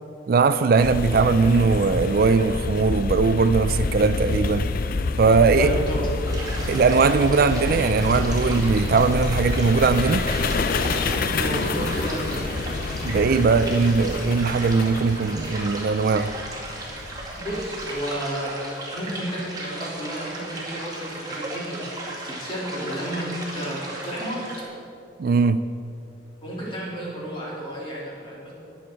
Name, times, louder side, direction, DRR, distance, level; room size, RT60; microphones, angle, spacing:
voice 1, 0.3-4.7 5.2-5.7 6.7-10.3 13.0-16.3 25.2-25.6, right 4 dB, 50° right, 12 dB, 0.3 m, -20 dB
sound 1, 0.8-18.0, left 3 dB, 50° left, 0.5 m, -28 dB
voice 2, 5.6-6.1 11.3-12.5 17.3-18.5 18.9-21.8 22.2-23.3 23.5-24.7 26.4-28.5, equal, 25° left, -6 dB, 3.4 m, -31 dB
sound 2, 6.2-24.6, right 2 dB, 20° right, 2.2 m, -36 dB
20.0 x 7.1 x 4.5 m, 2.6 s
head